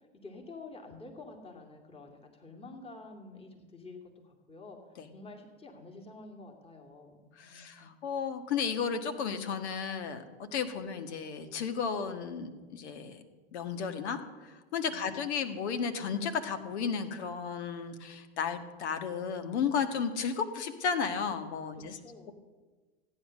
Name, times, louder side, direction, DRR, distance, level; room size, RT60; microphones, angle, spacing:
voice 1, 0.1-4.0 4.2-4.8 5.1-7.9 14.8-15.2 21.8-22.3, left 3 dB, 15° left, 1 dB, 2.5 m, -49 dB
voice 2, 7.4-13.2 13.5-22.0, left 6 dB, 75° left, 8 dB, 1.6 m, -34 dB
15.0 x 9.7 x 6.4 m, 1.3 s
hypercardioid pair, 95°, 34 cm